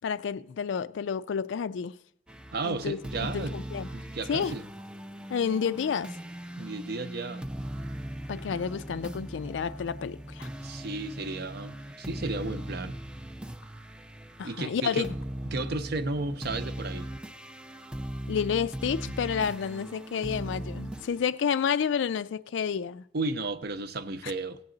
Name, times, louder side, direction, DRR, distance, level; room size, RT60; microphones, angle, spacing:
voice 1, 0.0-1.9 2.6-3.9 4.3-4.5 5.3-6.1 8.3-10.5 14.4-15.2 18.3-23.0, left 7 dB, 75° left, 0.4 m, -30 dB
sound 1, 2.3-21.3, right 1 dB, 5° right, 0.4 m, -39 dB
voice 2, 2.5-3.6 3.9-4.6 6.6-7.5 8.4-8.6 10.6-13.0 14.4-15.1 15.5-17.1 23.1-24.6, right 3 dB, 60° right, 0.6 m, -33 dB
16.0 x 8.4 x 3.8 m
head